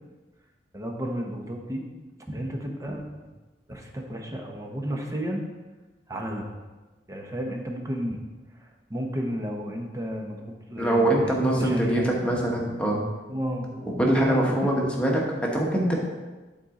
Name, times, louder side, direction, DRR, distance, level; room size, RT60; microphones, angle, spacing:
voice 1, 0.7-1.8 2.3-3.1 3.7-5.4 6.1-6.5 7.1-8.2 8.6-12.1 13.3-14.6, equal, 20° right, 2 dB, 0.9 m, -32 dB
voice 2, 10.8-13.0 14.0-16.0, right 1 dB, 5° left, -2 dB, 1.2 m, -23 dB
11.5 x 4.2 x 3.8 m, 1.2 s
head